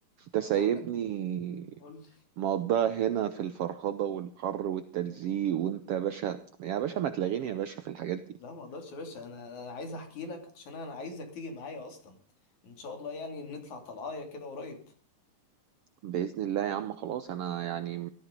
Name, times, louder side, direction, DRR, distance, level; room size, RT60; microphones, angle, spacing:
voice 1, 0.2-1.7 2.4-8.2 16.0-18.1, right 10 dB, 80° right, 11 dB, 1.3 m, -31 dB
voice 2, 1.8-2.2 8.4-12.2 12.6-14.9, left 3 dB, 60° left, 5 dB, 4.2 m, -41 dB
18.0 x 14.0 x 5.3 m, 0.42 s
omnidirectional pair, 3.8 m